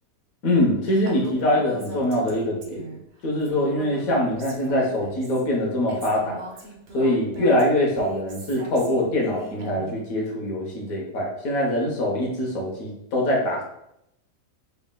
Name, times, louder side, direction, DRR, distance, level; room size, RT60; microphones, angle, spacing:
voice 1, 0.4-2.9 3.2-6.4 6.9-13.6, left 1 dB, 60° left, -1 dB, 1.4 m, -23 dB
Female speech woman speaking, 1.0-3.0 3.4-5.4 5.9-10.0, right 3 dB, 50° right, 0.8 m, -40 dB
4.1 x 3.7 x 2.3 m, 0.80 s
omnidirectional pair, 1.7 m